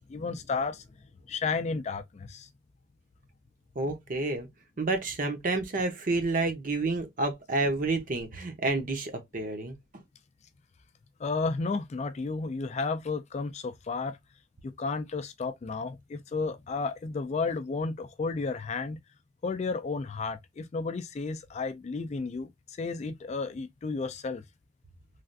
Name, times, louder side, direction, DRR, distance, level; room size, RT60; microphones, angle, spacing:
voice 1, 0.1-0.8 1.3-2.5 11.2-14.2 14.8-19.0 19.4-22.5 22.8-24.4, left 4 dB, 35° left, 0.3 m, -32 dB
voice 2, 3.8-4.5 4.8-9.8, right 2 dB, 45° right, 0.7 m, -29 dB
3.2 x 2.4 x 2.5 m
head